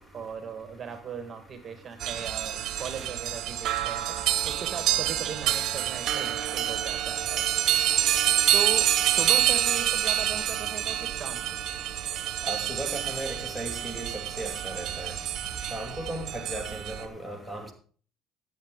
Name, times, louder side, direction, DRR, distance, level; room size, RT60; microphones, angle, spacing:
voice 1, 0.1-4.2 4.4-7.5 8.5-11.4, right 6 dB, 35° right, 1.7 m, -38 dB
sound 1, 2.0-17.0, right 12 dB, 55° right, 1.1 m, -27 dB
voice 2, 12.5-14.1 14.4-15.1 15.7-17.7, right 1 dB, 5° left, 2.4 m, -36 dB
13.0 x 8.1 x 3.7 m
supercardioid pair, 85°, 0 cm